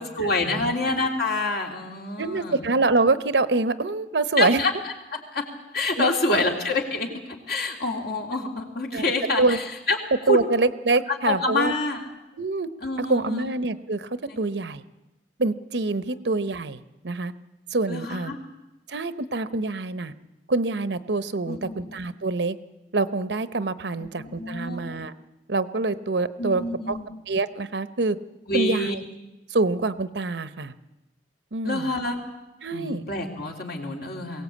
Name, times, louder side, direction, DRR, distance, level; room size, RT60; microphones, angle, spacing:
voice 1, 0.0-2.7 4.4-4.7 5.1-5.5 5.7-9.6 9.9-10.0 10.2-10.4 11.3-12.0 12.8-13.5 14.3-14.4 16.0-16.2 17.9-18.4 21.5-21.8 24.0-24.8 26.4-27.0 28.5-28.9 31.6-32.2 32.7-34.4, left 2 dB, 60° left, 1 dB, 3.2 m, -27 dB
voice 2, 2.2-4.6 6.0-6.4 8.9-9.1 9.4-9.6 10.3-11.7 12.3-12.7 13.0-14.1 14.4-14.8 15.4-17.3 17.7-18.4 18.9-20.1 20.5-22.6 22.9-25.1 25.5-27.0 27.3-28.2 28.5-29.0 29.5-30.7 31.5-31.9 32.6-33.0, right 3 dB, 70° right, 13 dB, 0.9 m, -25 dB
22.0 x 17.0 x 8.5 m, 1.0 s
head